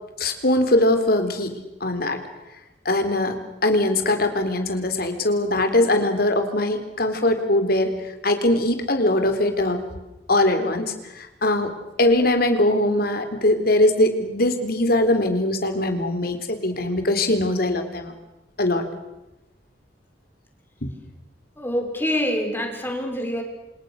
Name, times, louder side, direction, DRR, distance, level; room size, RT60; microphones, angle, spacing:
voice 1, 0.2-2.2 2.9-7.9 8.2-9.8 10.3-18.1 18.6-18.9 20.8-20.9, left 1 dB, 60° left, 7 dB, 3.8 m, -21 dB
voice 2, 21.6-23.4, left 1 dB, 15° left, 2 dB, 6.0 m, -25 dB
28.0 x 27.5 x 6.6 m, 0.99 s
head